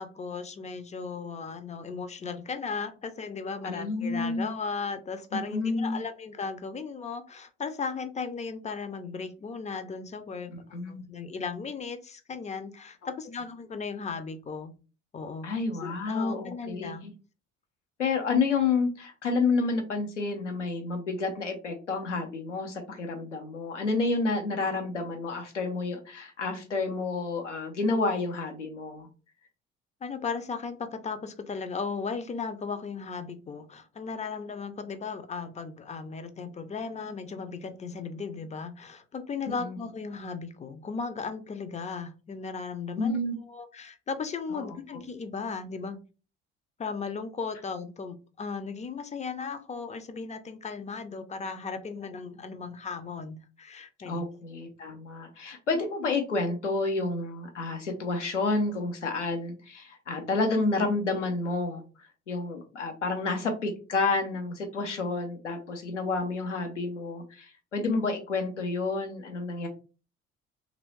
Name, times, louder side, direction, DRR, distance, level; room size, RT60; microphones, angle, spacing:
voice 1, 0.0-10.5 10.9-14.7 15.1-15.5 15.8-17.1 30.0-46.0 46.8-54.3, left 5 dB, 20° left, 10 dB, 0.4 m, -36 dB
voice 2, 3.6-4.5 5.3-6.0 10.5-11.0 15.4-17.1 18.0-29.1 39.6-39.8 43.0-43.4 44.5-44.6 54.0-61.8 62.3-69.7, left 3 dB, 90° left, 4 dB, 0.6 m, -30 dB
2.9 x 2.6 x 3.1 m, 0.35 s
figure-of-eight pair, 50°, 35 cm